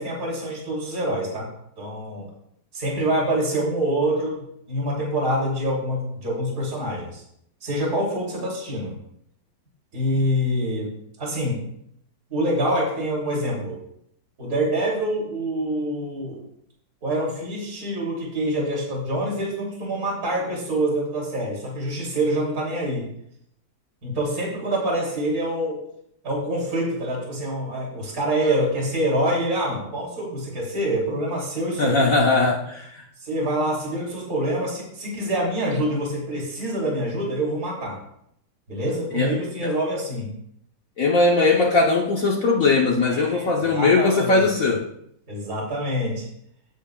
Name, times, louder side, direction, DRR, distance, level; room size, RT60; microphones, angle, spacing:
voice 1, 0.0-1.5 1.8-2.3 2.7-7.2 7.6-9.0 9.9-10.9 11.2-11.6 12.3-13.8 14.4-16.4 17.0-23.0 24.0-25.8 26.2-32.0 33.2-38.0 38.7-40.3 43.0-44.4 45.3-46.3, right 1 dB, 50° right, -4 dB, 3.5 m, -26 dB
voice 2, 31.8-33.0 39.1-39.3 39.6-39.7 41.0-44.9, left 3 dB, 55° left, -1 dB, 1.3 m, -20 dB
16.5 x 8.2 x 2.4 m, 0.74 s
omnidirectional pair, 2.0 m